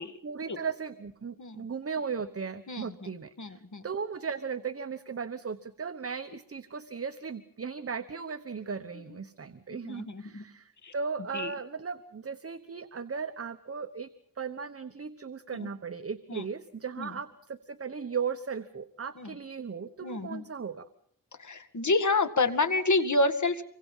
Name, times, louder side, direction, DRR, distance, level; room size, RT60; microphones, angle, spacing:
voice 1, 0.2-14.1 14.4-20.9, right 5 dB, 40° right, 9 dB, 1.1 m, -37 dB
voice 2, 2.7-3.1 3.4-3.8 9.8-10.4 10.8-10.9 11.3-11.5 15.5-15.7 16.3-16.5 17.0-17.2 19.2-19.3 20.0-20.4 21.4-23.6, left 3 dB, 55° left, 8 dB, 2.1 m, -29 dB
27.0 x 24.0 x 5.6 m, 0.63 s
wide cardioid pair, 95°, 35 cm